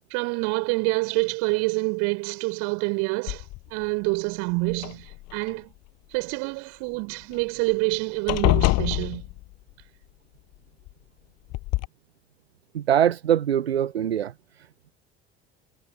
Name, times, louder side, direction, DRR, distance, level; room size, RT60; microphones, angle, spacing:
voice 1, 0.1-3.4 3.7-5.7 6.1-9.2, right 30 dB, 60° right, 5.4 m, -27 dB
sound 1, 3.3-3.8 4.7-5.5 7.3-7.4 7.7-7.9 8.3-9.7 10.9-11.0 11.5-11.9, left 20 dB, 55° left, 7.5 m, -25 dB
voice 2, 12.7-14.3, right 10 dB, 85° right, 0.5 m, -22 dB
figure-of-eight pair, 60°, 31 cm